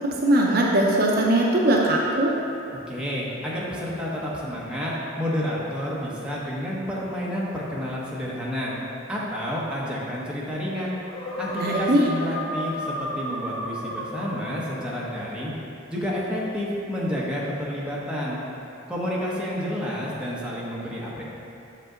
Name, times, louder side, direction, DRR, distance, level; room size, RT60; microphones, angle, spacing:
voice 1, 0.0-2.3 11.5-12.1, right 1 dB, 50° right, -2 dB, 0.6 m, -20 dB
voice 2, 2.9-8.7 9.1-10.9 11.4-15.5 15.9-18.4 18.9-21.2, equal, 5° right, -6 dB, 0.9 m, -30 dB
sound 1, 11.0-15.1, equal, 80° left, 1.3 m, -33 dB
6.5 x 5.3 x 3.8 m, 2.7 s
head